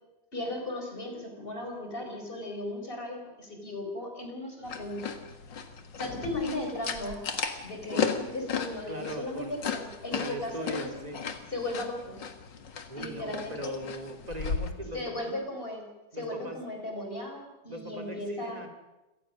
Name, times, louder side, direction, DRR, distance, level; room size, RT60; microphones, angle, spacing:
voice 1, 0.3-5.1 6.0-7.2 7.6-10.9 11.5-12.2 12.9-13.7 14.9-18.6, left 1 dB, 30° left, 3 dB, 5.1 m, -36 dB
sound 1, 4.7-14.7, left 6 dB, 75° left, 2.3 m, -36 dB
voice 2, 8.9-9.6 10.1-11.2 12.9-15.3 16.1-16.6 17.7-18.7, right 1 dB, 20° right, 4 dB, 2.8 m, -39 dB
27.0 x 18.5 x 6.4 m, 1.0 s
omnidirectional pair, 2.0 m